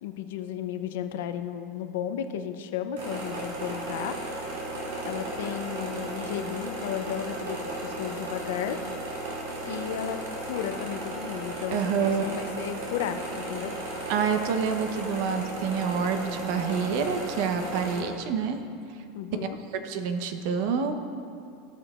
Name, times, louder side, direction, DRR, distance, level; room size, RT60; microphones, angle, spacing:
voice 1, 0.0-4.6 5.0-8.8 9.7-10.2 10.5-14.1 19.1-19.6, left 9 dB, 80° left, 8 dB, 0.5 m, -34 dB
sound 1, 3.0-18.0, right 1 dB, 90° right, 1.9 m, -35 dB
voice 2, 11.7-12.2 14.1-18.6 19.8-21.0, right 6 dB, 65° right, 7 dB, 0.8 m, -27 dB
15.5 x 6.8 x 2.4 m, 2.5 s
supercardioid pair, 120°, 0 cm